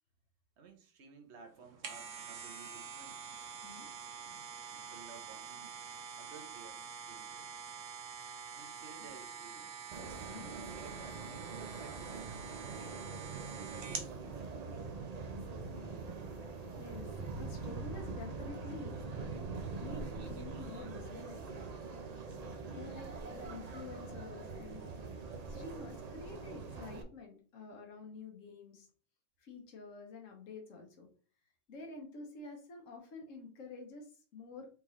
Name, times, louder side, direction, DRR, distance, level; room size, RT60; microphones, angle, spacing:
voice 1, 0.6-3.3 4.2-5.7 6.2-7.5 8.5-9.9 10.3-15.0, right 6 dB, 65° right, 1.1 m, -56 dB
sound 1, 1.6-14.1 14.6-14.7, right 6 dB, 80° right, 1.2 m, -46 dB
sound 2, 9.9-27.0, right 4 dB, 45° right, 0.6 m, -43 dB
voice 2, 10.2-10.6 15.6-19.0 19.8-21.6 22.7-24.9 25.5-28.9 29.4-31.1 31.7-34.7, left 3 dB, 85° left, 1.3 m, -49 dB
4.4 x 3.7 x 3.1 m
omnidirectional pair, 1.3 m